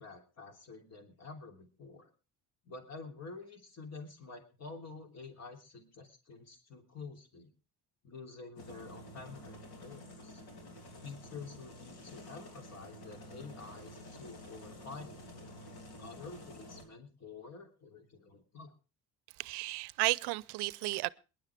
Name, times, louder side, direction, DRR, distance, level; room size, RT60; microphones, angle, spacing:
voice 1, 0.0-2.1 2.6-7.5 8.0-10.4 11.0-15.3 15.9-18.7, left 4 dB, 40° left, 3.0 m, -49 dB
sound 1, 8.6-16.8, left 1 dB, 80° left, 3.2 m, -50 dB
voice 2, 19.4-21.1, right 21 dB, 80° right, 0.6 m, -33 dB
22.0 x 11.0 x 3.4 m
cardioid pair, 105°, 39 cm